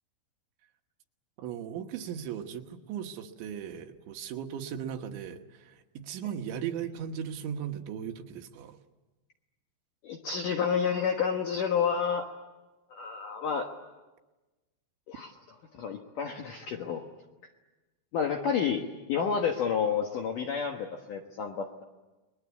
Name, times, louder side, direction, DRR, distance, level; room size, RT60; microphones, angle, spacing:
voice 1, 1.4-8.8, right 8 dB, 75° right, 5 dB, 3.4 m, -37 dB
voice 2, 10.0-12.2 12.9-13.7 15.1-15.3 15.7-17.0 18.1-18.8 19.1-21.8, left 6 dB, 70° left, 2 dB, 2.1 m, -30 dB
30.0 x 21.5 x 8.4 m, 1.1 s
omnidirectional pair, 5.5 m